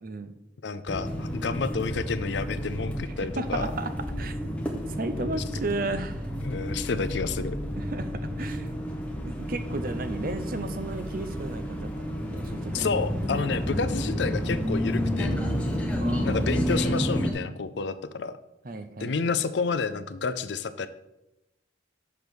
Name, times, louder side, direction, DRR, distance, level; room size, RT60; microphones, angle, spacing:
voice 1, 0.0-0.3 3.2-3.9 4.2-4.4 4.9-6.3 7.8-8.7 9.2-12.9 16.0-16.4 18.6-19.1, right 2 dB, 50° right, 10 dB, 0.6 m, -34 dB
voice 2, 0.6-3.7 5.2-5.4 6.4-7.6 12.7-15.4 16.2-18.4 19.0-20.9, left 4 dB, 70° left, 13 dB, 0.5 m, -30 dB
sound 1, 0.9-17.3, equal, 5° left, 0.9 m, -30 dB
5.9 x 5.2 x 6.2 m, 0.90 s
head